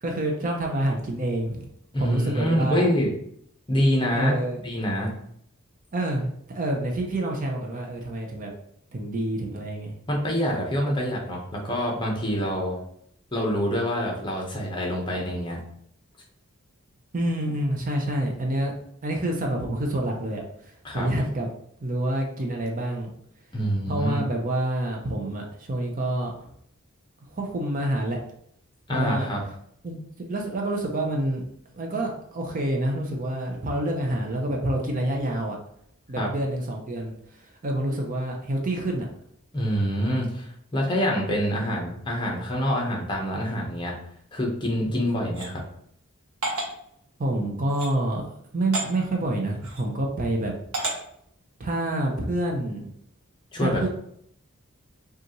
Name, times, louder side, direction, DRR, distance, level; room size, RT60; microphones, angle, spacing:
voice 1, 0.0-1.7 2.0-2.9 4.1-4.6 5.9-8.5 8.9-10.0 17.1-18.7 19.0-21.5 21.8-23.1 23.9-26.5 27.3-28.2 28.9-29.3 29.8-30.0 30.3-31.4 31.7-35.6 36.1-39.1 47.2-48.2 48.5-50.7 51.6-52.9 53.6-53.9, right 1 dB, 40° right, 1 dB, 0.6 m, -27 dB
voice 2, 1.9-3.1 3.7-4.4 4.6-5.1 10.1-12.8 13.3-15.6 20.8-21.1 23.5-24.2 28.9-29.4 36.2-36.3 39.5-43.9 44.3-45.6 53.5-53.9, equal, 20° left, -1 dB, 1.0 m, -26 dB
sound 1, 45.3-45.5 46.4-46.7 47.7-47.9 48.7-48.9 49.6-49.8 50.7-51.0, right 2 dB, 85° right, 1.3 m, -29 dB
5.1 x 2.5 x 3.0 m, 0.69 s
head